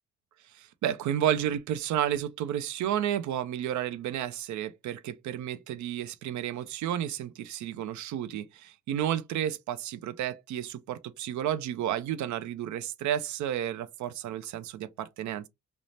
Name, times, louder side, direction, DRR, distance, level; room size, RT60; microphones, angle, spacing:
voice 1, 0.5-15.5, right 10 dB, 70° right, 0.5 m, -31 dB
2.6 x 2.0 x 3.1 m
cardioid pair, 90°, 30 cm